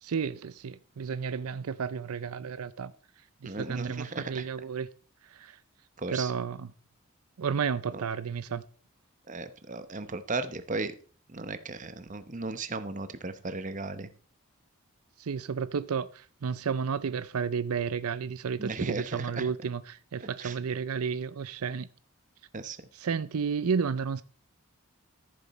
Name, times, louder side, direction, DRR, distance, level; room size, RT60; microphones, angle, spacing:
voice 1, 0.0-2.9 3.4-4.9 5.2-5.6 6.1-6.7 7.4-8.6 15.2-21.9 22.9-24.2, right 6 dB, 85° right, 0.5 m, -32 dB
voice 2, 3.4-4.5 6.0-6.3 9.3-10.9 11.3-14.1 18.6-19.5 20.4-20.6 22.5-22.8, right 3 dB, 35° right, 0.9 m, -35 dB
14.0 x 7.2 x 4.2 m
head